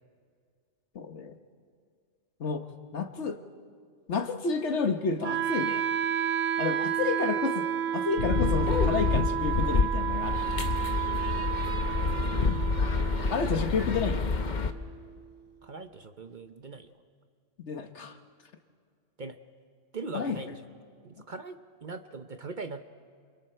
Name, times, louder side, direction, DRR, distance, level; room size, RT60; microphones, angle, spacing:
voice 1, 0.9-1.4 2.4-2.6 2.9-3.4 4.1-5.8 6.6-10.4 13.3-14.2 17.7-18.2 20.1-20.5, left 5 dB, 65° left, 6 dB, 1.5 m, -30 dB
Wind instrument woodwind instrument, 5.2-15.2, right 8 dB, 80° right, 1.3 m, -31 dB
sound 1, 8.2-14.7, left 4 dB, 40° left, 0.9 m, -28 dB
voice 2, 12.1-12.8 15.6-16.9 19.2-19.4 19.9-20.5 21.0-22.9, right 3 dB, 45° right, 8 dB, 0.8 m, -41 dB
28.0 x 27.5 x 4.5 m, 2.1 s
omnidirectional pair, 1.3 m